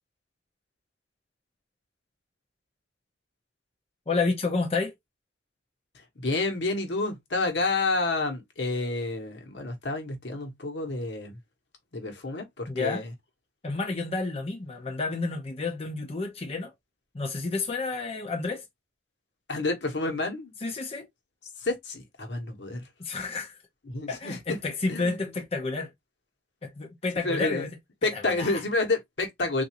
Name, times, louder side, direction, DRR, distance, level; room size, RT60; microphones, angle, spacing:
voice 1, 4.1-4.9 12.7-13.0 13.6-16.7 17.1-18.6 20.6-21.1 23.0-23.6 24.1-25.9 26.6-27.7 28.0-28.6, left 3 dB, 35° left, 0.7 m, -30 dB
voice 2, 6.2-11.4 11.9-13.1 19.5-20.5 21.6-22.9 23.9-24.6 24.9-25.3 27.2-27.7 28.0-29.6, left 2 dB, 75° left, 1.1 m, -29 dB
3.7 x 2.6 x 2.8 m
head